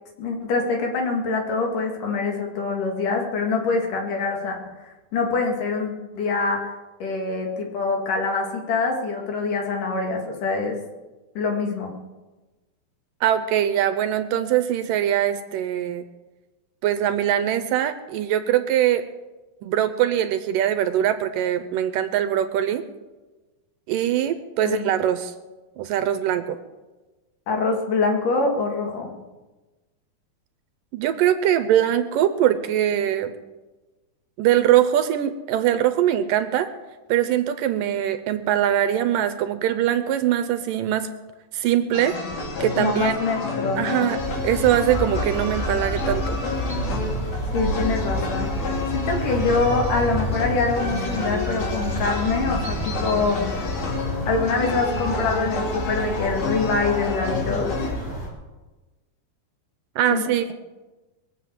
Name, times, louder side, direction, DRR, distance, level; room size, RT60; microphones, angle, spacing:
voice 1, 0.2-4.6 4.8-6.7 7.0-10.8 11.4-11.9 24.6-24.9 27.5-29.1 42.8-44.1 47.5-53.4 54.3-57.7 60.1-60.2, left 4 dB, 65° left, 2 dB, 3.6 m, -25 dB
voice 2, 13.2-16.0 16.8-19.1 19.6-22.8 23.9-25.3 25.8-26.6 30.9-33.3 34.4-36.7 37.1-41.1 41.5-42.2 42.6-43.2 43.8-46.4 60.0-60.5, right 11 dB, 80° right, 11 dB, 2.2 m, -22 dB
sound 1, 41.9-57.9, left 3 dB, 80° left, 4.7 m, -30 dB
sound 2, 44.2-58.3, equal, 10° left, 4.6 m, -29 dB
22.0 x 7.9 x 7.6 m, 1.2 s
omnidirectional pair, 4.2 m